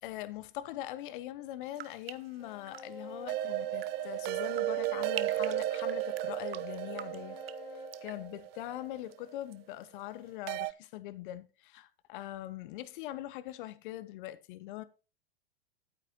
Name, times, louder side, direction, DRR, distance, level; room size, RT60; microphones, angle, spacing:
voice 1, 0.0-7.4 8.0-14.8, left 14 dB, 55° left, 0.9 m, -42 dB
sound 1, 1.6-9.6 9.8-10.4, right 11 dB, 75° right, 0.8 m, -48 dB
sound 2, 2.4-8.9, equal, 80° left, 2.9 m, -47 dB
sound 3, 3.3-9.3 10.5-10.7, right 17 dB, 35° right, 0.4 m, -34 dB
11.5 x 9.1 x 2.8 m
hypercardioid pair, 95°, 30 cm